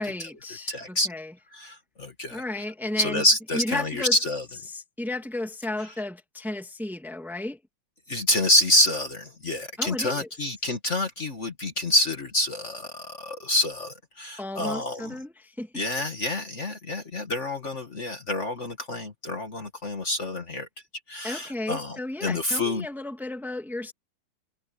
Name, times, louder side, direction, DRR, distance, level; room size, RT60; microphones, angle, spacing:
voice 1, 0.0-1.3 2.3-3.2 3.5-4.1 4.7-7.6 9.8-10.3 14.4-15.7 21.2-23.9, left 2 dB, ahead, 0.6 m, -33 dB
voice 2, 0.7-1.1 1.5-2.4 3.0-4.4 8.1-15.1 15.7-20.7 21.1-22.8, left 1 dB, 55° left, 0.8 m, -27 dB
omnidirectional pair, 4.1 m